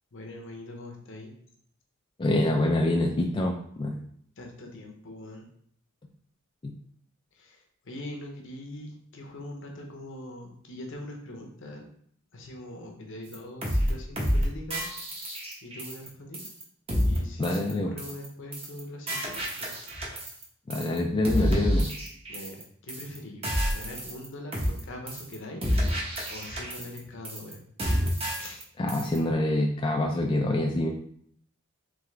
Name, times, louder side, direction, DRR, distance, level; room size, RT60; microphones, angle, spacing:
voice 1, 0.1-1.3 4.4-5.5 7.4-11.8 12.3-14.8 15.2-16.4 17.0-19.2 19.6-19.7 22.3-23.4 23.7-27.6 28.3-28.6, left 1 dB, 65° left, 2 dB, 0.8 m, -42 dB
voice 2, 2.2-4.0 17.4-17.9 20.7-21.9 28.8-30.9, left 1 dB, 25° left, 0 dB, 0.3 m, -26 dB
sound 1, 13.3-13.4 13.6-13.9 14.2-14.4 14.7-16.1 16.3-16.6 16.9-17.2 17.4-17.7 18.0-18.3 18.5-18.8 19.1-20.4 20.7-21.0 21.2-22.6 22.9-23.2 23.4-24.3 24.5-24.8 25.1-25.3 25.6-27.0 27.2-27.5 27.8-28.6 28.9-29.2, equal, 30° right, 0.9 m, -29 dB
3.7 x 3.4 x 3.2 m, 0.64 s
head